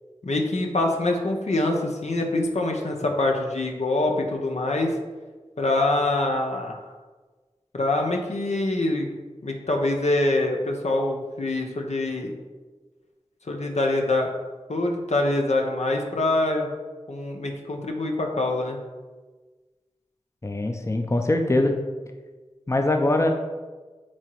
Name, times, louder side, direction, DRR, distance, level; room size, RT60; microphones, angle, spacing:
voice 1, 0.2-4.9 5.6-6.8 7.7-9.2 9.4-12.3 13.5-14.3 14.7-16.7 17.1-18.8, left 2 dB, 75° left, 2 dB, 0.9 m, -25 dB
voice 2, 20.4-21.8 22.7-23.3, left 2 dB, 25° left, 4 dB, 0.6 m, -22 dB
8.7 x 3.0 x 4.6 m, 1.3 s
wide cardioid pair, 55°, 11 cm